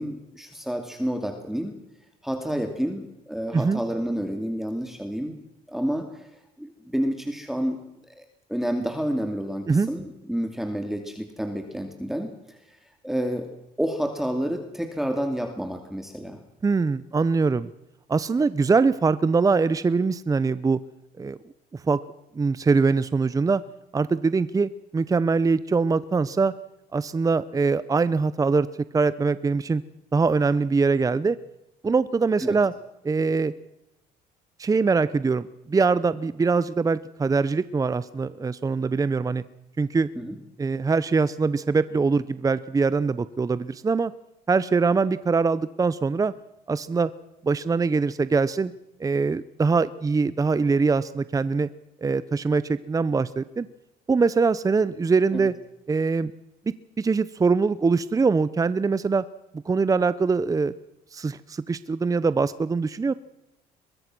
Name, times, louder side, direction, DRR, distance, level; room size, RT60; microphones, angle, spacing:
voice 1, 0.0-1.8 2.2-5.3 5.7-6.3 6.6-7.8 8.2-12.8 13.0-13.5 13.8-16.4 32.4-32.6 40.2-40.4 55.3-55.5, equal, ahead, 5 dB, 2.5 m, -29 dB
voice 2, 16.6-17.7 18.1-20.8 21.2-21.4 21.9-22.0 22.3-23.6 23.9-26.5 26.9-28.7 28.9-29.8 30.1-31.4 31.8-32.7 33.0-33.5 34.6-39.4 39.8-40.1 40.6-44.1 44.5-46.3 46.7-47.1 47.4-48.7 49.0-51.7 52.0-53.7 54.1-55.5 55.9-56.3 57.0-59.2 59.6-60.7 61.1-63.1, right 4 dB, 20° right, 16 dB, 0.8 m, -23 dB
22.5 x 22.5 x 6.1 m, 0.90 s
cardioid pair, 110°, 17 cm